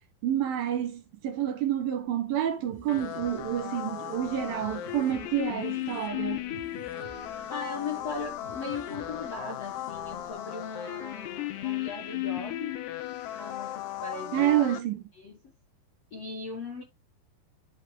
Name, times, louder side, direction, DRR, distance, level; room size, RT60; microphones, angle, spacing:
voice 1, 0.2-6.6 14.3-15.0, right 11 dB, 65° right, 2.7 m, -29 dB
sound 1, 2.6-10.3, right 3 dB, 45° right, 1.0 m, -49 dB
sound 2, 2.9-14.8, left 14 dB, 80° left, 3.0 m, -36 dB
voice 2, 7.5-12.8 13.3-14.6 15.2-15.4 16.1-16.8, left 4 dB, 60° left, 1.7 m, -38 dB
11.5 x 4.7 x 3.5 m
omnidirectional pair, 5.0 m